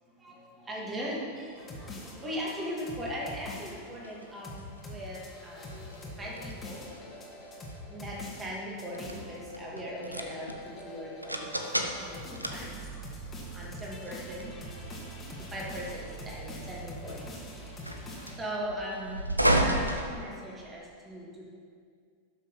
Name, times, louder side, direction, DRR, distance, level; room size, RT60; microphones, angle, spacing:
voice 1, 0.2-5.8 6.2-6.8 7.9-11.6 12.0-12.8 13.5-14.5 15.5-17.5 18.3-21.4, equal, 15° right, -4 dB, 2.5 m, -39 dB
sound 1, 1.5-20.9, right 1 dB, 85° right, 0.8 m, -35 dB
sound 2, 1.6-18.4, equal, 20° left, 2.2 m, -44 dB
12.0 x 6.8 x 5.7 m, 2.2 s
figure-of-eight pair, 90°, 0 cm